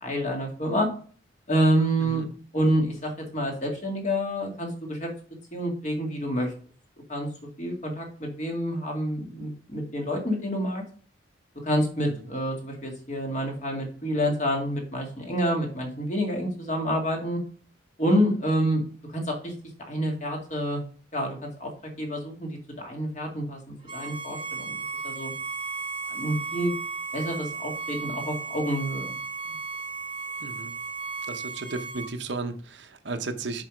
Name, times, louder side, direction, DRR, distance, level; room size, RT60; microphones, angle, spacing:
voice 1, 0.0-0.9 1.5-2.3 2.5-5.1 5.5-6.5 7.1-7.3 7.6-10.8 11.6-17.4 18.0-18.8 19.1-19.5 19.9-20.8 21.1-21.7 22.0-24.8 25.0-25.3 26.1-26.7 27.1-29.1, equal, 40° left, 2.0 m, -28 dB
Bowed string instrument, 23.9-32.1, right 4 dB, 25° right, 1.2 m, -35 dB
voice 2, 30.4-30.7 31.3-33.6, right 3 dB, 70° right, 0.8 m, -34 dB
7.5 x 4.9 x 5.0 m
head